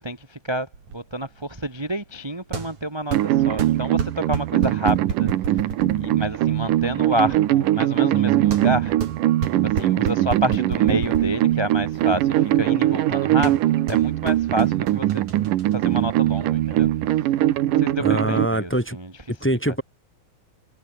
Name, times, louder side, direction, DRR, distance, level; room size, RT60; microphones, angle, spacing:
voice 1, 0.0-5.7 5.9-9.0 9.6-15.2 15.7-17.3 17.8-19.1 19.7-19.8, right 1 dB, 10° right, 1.4 m, -29 dB
sound 1, 0.7-16.9, right 5 dB, 65° right, 5.3 m, -34 dB
sound 2, 3.1-18.5, right 14 dB, 85° right, 2.8 m, -21 dB
voice 2, 18.0-19.0 19.3-19.8, right 1 dB, 5° left, 1.8 m, -23 dB
omnidirectional pair, 3.7 m